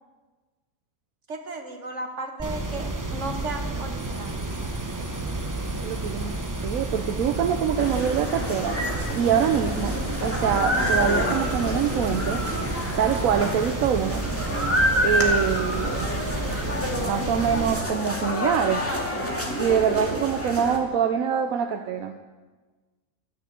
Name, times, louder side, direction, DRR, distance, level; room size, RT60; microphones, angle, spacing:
voice 1, 1.3-4.5, right 2 dB, 60° right, 3 dB, 2.0 m, -35 dB
sound 1, 2.4-17.8, right 2 dB, 15° right, 0.8 m, -31 dB
sound 2, 3.9-13.3, equal, 30° left, 3.4 m, -48 dB
voice 2, 5.7-8.8 9.1-12.4 13.0-14.2 15.0-16.1 17.1-18.8 19.6-22.2, right 8 dB, 80° right, 6 dB, 1.1 m, -25 dB
sound 3, 7.8-20.8, equal, 10° left, 2.1 m, -28 dB
12.5 x 10.0 x 8.3 m, 1.3 s
omnidirectional pair, 1.5 m